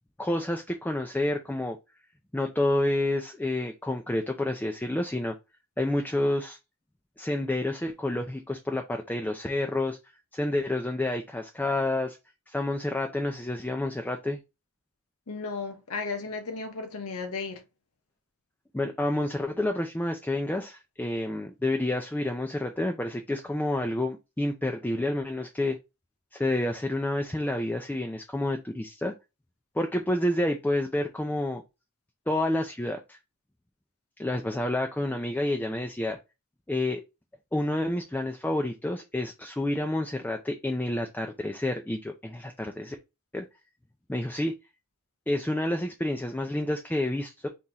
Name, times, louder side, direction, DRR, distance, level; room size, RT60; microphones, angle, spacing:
voice 1, 0.2-1.8 2.3-5.4 5.8-6.6 7.2-10.0 10.3-12.2 12.5-14.4 18.7-25.8 26.3-29.1 29.7-31.6 32.3-33.2 34.2-36.2 36.7-37.0 37.5-43.0 43.3-43.5 44.1-44.5 45.3-47.5, left 1 dB, 10° left, 0.4 m, -29 dB
voice 2, 15.3-17.6, left 4 dB, 85° left, 1.0 m, -34 dB
4.1 x 3.0 x 3.7 m
head